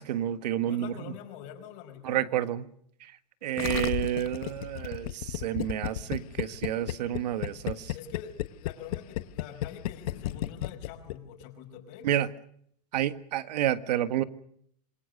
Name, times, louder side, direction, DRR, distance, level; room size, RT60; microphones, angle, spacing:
voice 1, 0.0-0.9 2.0-2.7 3.0-3.1 3.4-7.9 12.0-12.3 12.9-14.2, right 11 dB, 75° right, 12 dB, 1.7 m, -29 dB
voice 2, 0.6-2.3 7.9-12.1, left 8 dB, 45° left, 4 dB, 5.0 m, -45 dB
Gurgling, 3.6-11.4, left 14 dB, 60° left, 1.3 m, -33 dB
27.5 x 22.0 x 6.6 m, 0.69 s
supercardioid pair, 170°, 21 cm